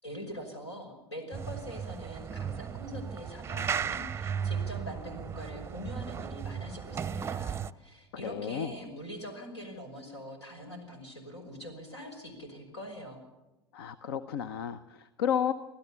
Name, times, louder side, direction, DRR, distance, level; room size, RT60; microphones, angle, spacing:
voice 1, 0.0-13.2, equal, 85° left, 5 dB, 5.5 m, -43 dB
sound 1, 1.3-7.7, right 7 dB, 20° right, 0.6 m, -35 dB
voice 2, 8.1-8.7 13.7-15.5, left 9 dB, 65° left, 14 dB, 0.8 m, -32 dB
25.5 x 16.0 x 6.9 m, 1.0 s
figure-of-eight pair, 80°, 14 cm